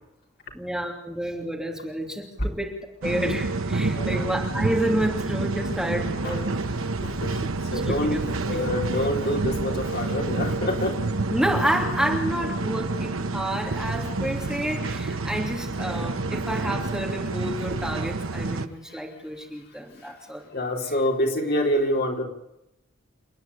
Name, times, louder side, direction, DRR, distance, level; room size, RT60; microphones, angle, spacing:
voice 1, 0.5-6.5 7.7-8.7 11.3-20.5 20.9-21.0, right 1 dB, 5° right, 0 dB, 3.0 m, -29 dB
sound 1, 3.0-18.7, right 3 dB, 80° right, 1.1 m, -28 dB
voice 2, 7.0-7.4 7.7-10.9 20.5-22.2, left 1 dB, 50° left, 1 dB, 4.0 m, -26 dB
29.5 x 10.0 x 9.4 m, 0.83 s
head